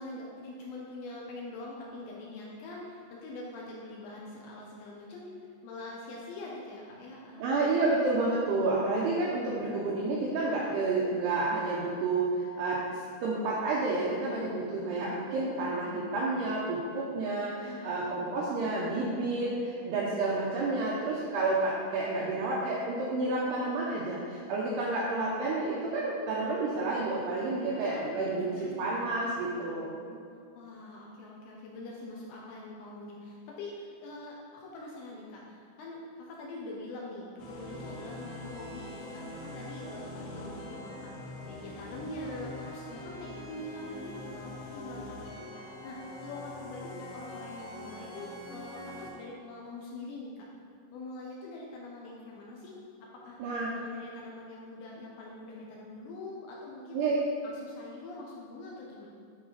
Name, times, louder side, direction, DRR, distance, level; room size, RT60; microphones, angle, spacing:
voice 1, 0.0-7.6 17.6-18.9 27.5-30.2 30.5-45.5 45.8-50.5 50.9-52.7 53.2-57.0 57.4-59.1, left 2 dB, 75° left, -3 dB, 2.8 m, -44 dB
voice 2, 7.4-29.9 53.4-53.7 56.9-57.2, right 2 dB, 85° right, -5 dB, 2.4 m, -30 dB
sound 1, 37.4-49.1, left 1 dB, 60° left, 2.5 m, -43 dB
11.0 x 4.9 x 4.0 m, 2.3 s
omnidirectional pair, 5.8 m